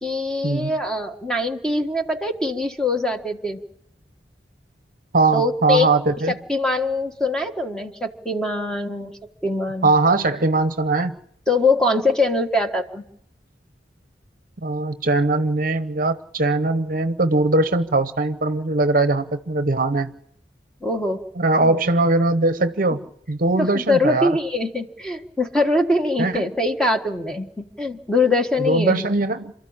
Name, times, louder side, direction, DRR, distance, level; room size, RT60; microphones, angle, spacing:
voice 1, 0.0-3.6 5.3-5.9 6.3-9.1 9.4-9.9 11.5-13.0 20.8-21.2 21.6-21.8 23.6-29.0, left 2 dB, 5° left, 1.5 m, -23 dB
voice 2, 5.1-6.4 9.8-11.2 14.6-20.1 21.4-24.3 26.2-26.5 28.6-29.5, right 2 dB, 50° right, 0.9 m, -20 dB
28.0 x 13.5 x 8.8 m
head